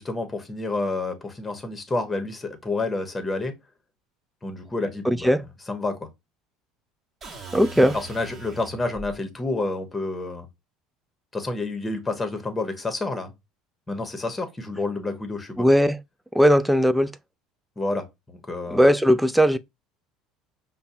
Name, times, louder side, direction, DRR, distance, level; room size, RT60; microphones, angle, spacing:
voice 1, 0.0-3.6 4.4-5.3 5.7-6.1 7.8-10.5 11.3-13.3 13.9-15.7 17.8-18.9, left 2 dB, 15° left, 1.1 m, -29 dB
voice 2, 5.0-5.4 7.5-8.0 15.6-16.0 16.3-17.2 18.7-19.6, equal, 5° right, 0.4 m, -18 dB
sound 1, 7.2-9.1, right 3 dB, 35° right, 1.3 m, -40 dB
5.3 x 2.3 x 2.7 m
supercardioid pair, 90°, 0 cm